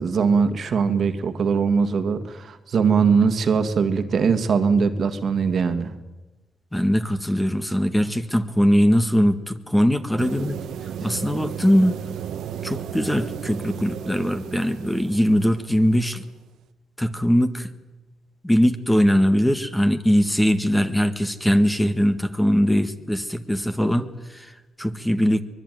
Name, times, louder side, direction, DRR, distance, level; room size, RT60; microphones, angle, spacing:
voice 1, 0.0-5.9, right 5 dB, 50° right, 9 dB, 2.0 m, -21 dB
voice 2, 6.7-10.6 11.0-12.0 12.6-16.2 17.0-17.7 18.4-25.4, equal, 5° left, 8 dB, 1.6 m, -21 dB
sound 1, 10.2-16.1, right 9 dB, 75° right, 1.5 m, -34 dB
23.5 x 21.5 x 9.4 m, 1.1 s
cardioid pair, 120°, 0 cm